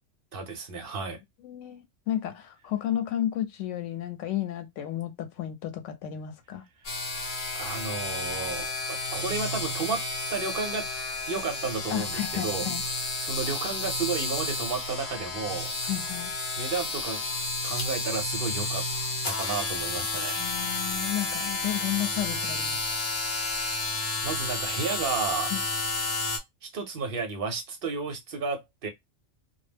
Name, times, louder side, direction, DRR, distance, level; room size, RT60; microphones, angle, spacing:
voice 1, 0.3-1.2 7.5-10.0 10.3-10.9 11.3-15.7 16.6-17.2 17.6-18.9 19.2-20.4 23.6-23.7 24.2-25.5 26.6-28.9, right 5 dB, 55° right, 0.8 m, -32 dB
voice 2, 1.4-6.6 11.9-12.8 15.8-16.3 20.1-23.0 25.5-25.6, left 12 dB, 85° left, 1.0 m, -32 dB
sound 1, 6.8-26.4, left 2 dB, 60° left, 0.9 m, -31 dB
2.2 x 2.0 x 3.2 m
omnidirectional pair, 1.2 m